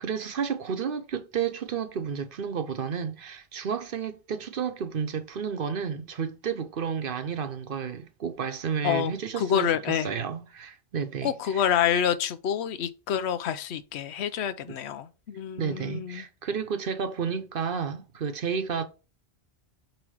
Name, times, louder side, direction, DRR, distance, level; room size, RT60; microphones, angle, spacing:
voice 1, 0.0-11.6 14.7-14.8 15.6-18.9, right 6 dB, 60° right, 0.9 m, -31 dB
voice 2, 8.8-10.1 11.2-16.2, left 9 dB, 85° left, 0.9 m, -27 dB
8.8 x 3.1 x 4.7 m
omnidirectional pair, 1.1 m